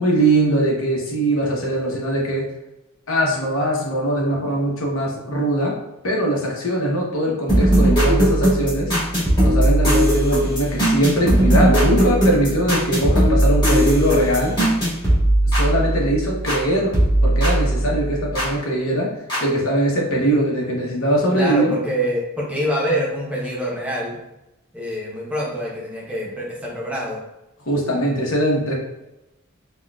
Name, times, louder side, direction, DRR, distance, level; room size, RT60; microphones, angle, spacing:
voice 1, 0.0-2.5 3.1-5.7 6.0-8.9 9.4-14.5 15.5-16.9 17.2-19.1 19.4-21.8 27.7-28.7, right 1 dB, 75° left, -2 dB, 0.9 m, -21 dB
sound 1, 7.5-16.6 16.9-18.5 19.3-19.4, right 1 dB, 20° left, 1.4 m, -18 dB
voice 2, 21.3-24.2 24.7-27.2, equal, 5° right, -4 dB, 0.7 m, -25 dB
4.3 x 2.3 x 2.3 m, 0.94 s
head